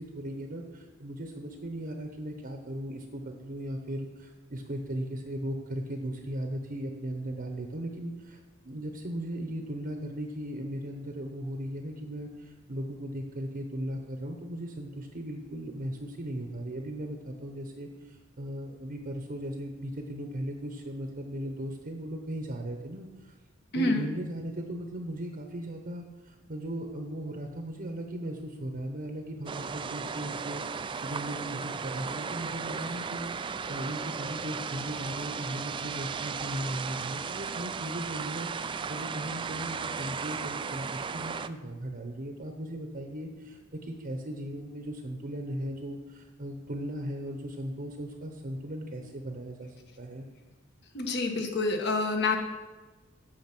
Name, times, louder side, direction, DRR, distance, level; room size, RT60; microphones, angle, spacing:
voice 1, 0.0-23.3 23.7-50.2, right 1 dB, 45° right, 4 dB, 0.9 m, -37 dB
voice 2, 23.7-24.1 50.9-52.4, left 2 dB, 55° left, 3 dB, 1.4 m, -27 dB
sound 1, 29.5-41.5, right 5 dB, 25° right, 0.3 m, -35 dB
8.9 x 7.0 x 6.0 m, 1.2 s
head